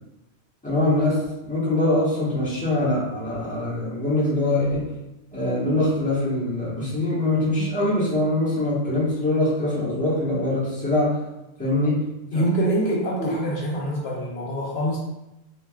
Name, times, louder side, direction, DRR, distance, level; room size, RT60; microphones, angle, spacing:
voice 1, 0.6-4.9 5.3-11.2 11.6-12.1 13.2-13.3, left 1 dB, 10° left, -9 dB, 1.0 m, -23 dB
voice 2, 12.3-15.0, right 1 dB, 70° left, -3 dB, 0.9 m, -25 dB
3.3 x 2.4 x 2.3 m, 0.92 s
omnidirectional pair, 1.1 m